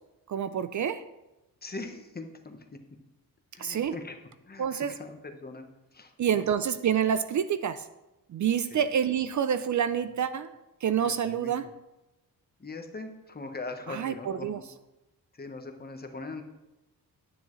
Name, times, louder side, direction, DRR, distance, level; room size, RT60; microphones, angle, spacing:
voice 1, 0.3-1.0 3.6-4.0 4.6-4.9 6.2-7.9 8.3-10.5 10.8-11.6 13.9-14.6, right 8 dB, 50° right, 12 dB, 0.5 m, -27 dB
voice 2, 1.6-2.7 3.5-4.2 4.5-5.7 5.9-6.5 8.7-8.9 10.9-11.5 12.6-14.6 15.3-16.4, left 3 dB, 25° left, 5 dB, 1.1 m, -41 dB
9.8 x 9.7 x 3.1 m, 0.99 s
cardioid pair, 105°, 38 cm